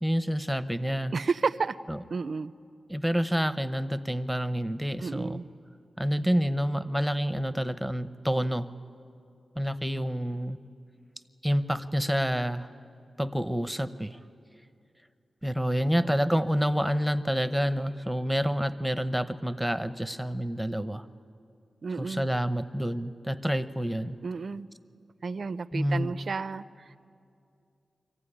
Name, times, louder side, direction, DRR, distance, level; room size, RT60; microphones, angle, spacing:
voice 1, 0.0-1.1 1.9-2.0 2.9-5.4 6.0-8.7 9.6-10.6 11.4-12.7 13.2-14.2 15.4-21.0 22.0-24.2 25.7-26.1, equal, 5° right, 12 dB, 0.8 m, -28 dB
voice 2, 1.1-1.8 2.1-2.5 5.0-5.5 21.8-22.3 24.2-24.7 25.2-26.9, right 4 dB, 60° right, 14 dB, 0.5 m, -31 dB
24.5 x 15.5 x 9.9 m, 2.5 s
cardioid pair, 60°, 0 cm